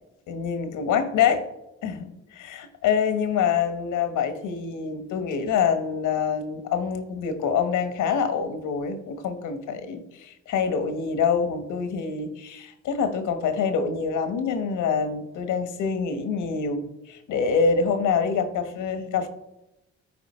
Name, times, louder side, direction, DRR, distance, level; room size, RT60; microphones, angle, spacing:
voice 1, 0.3-1.4 1.8-19.3, left 6 dB, 80° left, 9 dB, 1.2 m, -26 dB
12.5 x 4.5 x 4.3 m, 0.90 s
cardioid pair, 90°, 30 cm